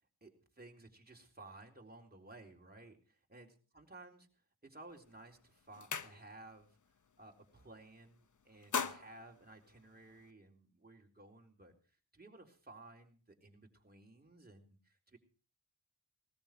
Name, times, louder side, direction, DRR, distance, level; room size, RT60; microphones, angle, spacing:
voice 1, 0.2-4.3 4.6-6.8 7.2-11.7 12.1-15.2, right 2 dB, 25° right, 2 dB, 4.0 m, -56 dB
rotary switches boiler room, 4.9-5.1 5.5-6.6 7.0-7.2 7.5-8.1 8.4-10.3, left 6 dB, 55° left, 1.1 m, -41 dB
19.0 x 14.0 x 4.5 m, 0.38 s
cardioid pair, 60°, 38 cm